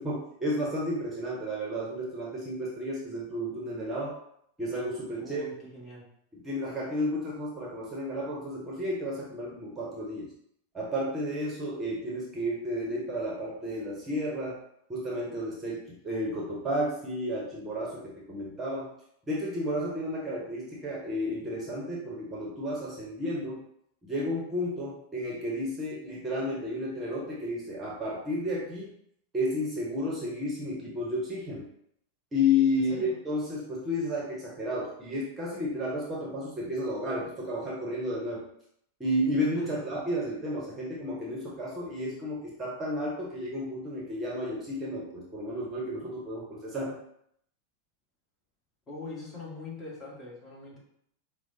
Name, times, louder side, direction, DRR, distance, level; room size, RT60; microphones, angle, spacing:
voice 1, 0.0-4.1 4.6-5.4 6.3-10.3 10.7-14.6 14.9-18.9 19.3-23.6 24.0-28.9 29.3-31.7 32.3-38.4 39.0-47.0, left 1 dB, 15° right, -4 dB, 0.8 m, -32 dB
voice 2, 5.2-6.1 32.9-33.1 39.6-39.7 48.9-50.8, left 3 dB, 25° left, -5 dB, 1.2 m, -42 dB
4.7 x 2.0 x 2.7 m, 0.71 s
figure-of-eight pair, 90°, 0 cm